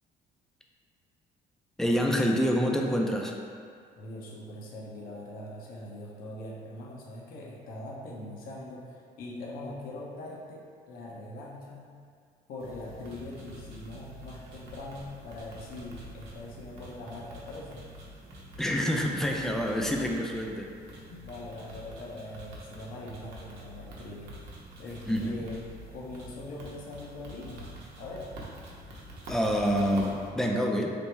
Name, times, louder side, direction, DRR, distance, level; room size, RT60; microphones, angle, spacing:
voice 1, 1.8-3.4 18.6-20.7 25.1-25.3 29.3-30.9, equal, ahead, 0 dB, 0.3 m, -27 dB
voice 2, 4.0-11.9 12.5-17.8 21.1-24.5 24.8-25.6 25.9-27.7 28.0-28.3, left 1 dB, 60° left, -3 dB, 0.6 m, -42 dB
sound 1, 12.6-30.3, right 1 dB, 75° right, 0.8 m, -46 dB
3.4 x 2.0 x 4.2 m, 2.2 s
cardioid pair, 110°, 17 cm